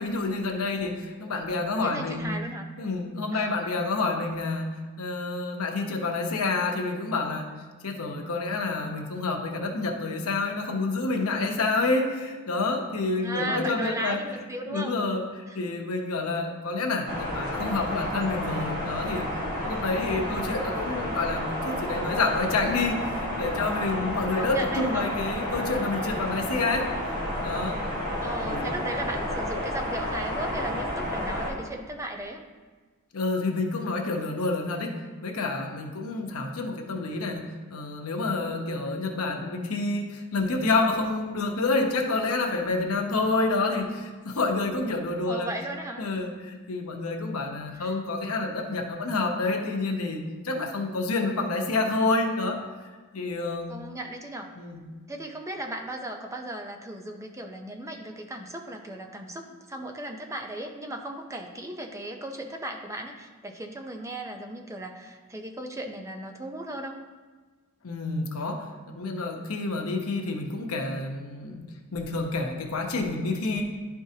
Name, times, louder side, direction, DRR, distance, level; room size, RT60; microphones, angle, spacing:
voice 1, 0.0-2.3 2.8-7.5 7.8-14.2 14.7-15.2 15.5-19.3 19.6-26.9 27.4-27.8 28.5-28.7 33.1-45.5 46.0-52.6 53.1-53.8 54.6-54.8 67.8-73.6, left 3 dB, 90° left, 3 dB, 0.9 m, -28 dB
voice 2, 1.8-2.7 3.3-3.5 13.2-15.0 15.5-15.6 20.2-20.6 24.4-25.1 28.2-32.4 43.2-43.4 45.3-46.1 47.8-47.9 53.7-54.5 55.1-67.0, right 1 dB, 15° right, 3 dB, 0.6 m, -36 dB
sound 1, 17.1-31.5, left 1 dB, 45° right, 1.5 m, -31 dB
11.0 x 4.7 x 2.8 m, 1.4 s
head